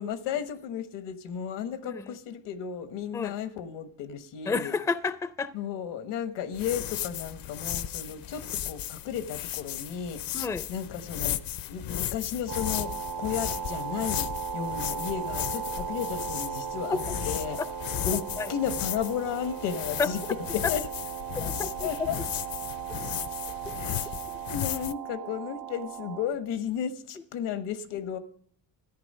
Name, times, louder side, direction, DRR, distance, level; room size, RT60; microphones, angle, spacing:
voice 1, 0.0-4.7 5.5-10.2 10.7-11.4 11.6-14.3 14.5-17.6 18.0-20.2 20.5-20.8 21.8-22.1 23.8-24.1 24.5-28.2, left 8 dB, 85° left, 1.3 m, -34 dB
voice 2, 4.5-5.5 10.3-10.6 16.9-17.0 18.4-18.5 20.0-20.1 21.4-22.1 23.6-23.7, left 4 dB, 10° left, 0.4 m, -30 dB
sound 1, 6.5-24.9, left 12 dB, 60° left, 0.6 m, -35 dB
sound 2, 12.5-26.2, right 8 dB, 80° right, 1.9 m, -37 dB
14.0 x 9.6 x 5.4 m
cardioid pair, 120°, 40 cm